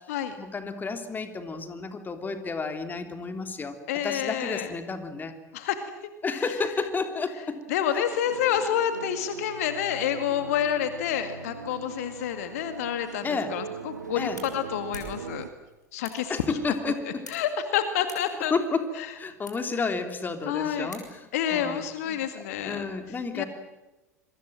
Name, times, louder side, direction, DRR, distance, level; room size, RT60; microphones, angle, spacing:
voice 1, 0.4-3.7 4.0-5.3 6.2-7.7 7.9-8.0 13.2-13.6 14.2-14.4 16.3-17.3 18.5-18.9 19.2-22.2 22.6-23.5, left 4 dB, 20° left, 7 dB, 3.3 m, -31 dB
voice 2, 3.9-4.7 5.5-5.8 6.3-6.4 7.7-15.5 15.9-16.6 17.3-18.5 19.0-19.1 20.5-20.9 21.3-22.9 23.3-23.4, left 9 dB, 60° left, 9 dB, 2.0 m, -28 dB
sound 1, 8.2-15.5, right 5 dB, 80° right, 1.3 m, -40 dB
sound 2, 13.7-21.5, left 1 dB, 85° left, 6.1 m, -50 dB
27.5 x 23.0 x 7.6 m, 1.1 s
figure-of-eight pair, 75°, 9 cm